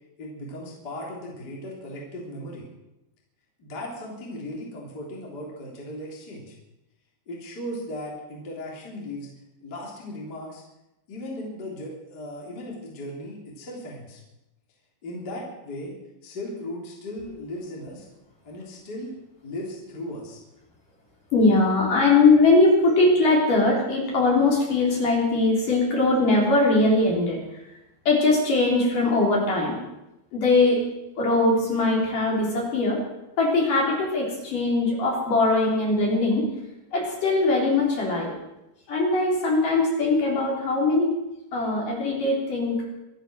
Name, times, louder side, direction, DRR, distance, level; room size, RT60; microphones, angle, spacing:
voice 1, 0.2-2.7 3.6-6.6 7.3-9.3 9.6-10.6 11.1-14.2 15.0-16.0 16.2-18.1 18.4-19.1 19.4-20.4, left 1 dB, 25° left, -3 dB, 3.4 m, -37 dB
voice 2, 21.3-27.6 28.0-29.8 30.3-30.8 31.2-33.0 33.4-36.5 36.9-38.3 38.9-41.1 41.5-42.8, left 2 dB, 50° left, -2 dB, 4.9 m, -21 dB
25.0 x 9.1 x 6.3 m, 0.93 s
omnidirectional pair, 5.2 m